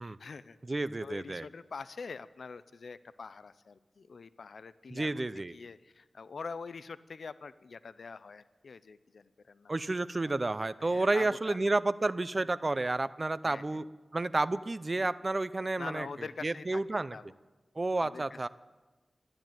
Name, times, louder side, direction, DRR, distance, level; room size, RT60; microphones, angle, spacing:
voice 1, 0.0-9.7 10.2-10.3 10.8-11.6 13.4-13.8 15.8-17.3 18.0-18.5, left 4 dB, 80° left, 15 dB, 0.5 m, -45 dB
voice 2, 0.7-1.4 4.9-5.5 9.7-13.8 14.1-16.1 16.4-17.2 17.8-18.5, right 2 dB, 40° right, 15 dB, 0.6 m, -31 dB
13.0 x 12.0 x 9.1 m, 1.2 s
cardioid pair, 55°, 0 cm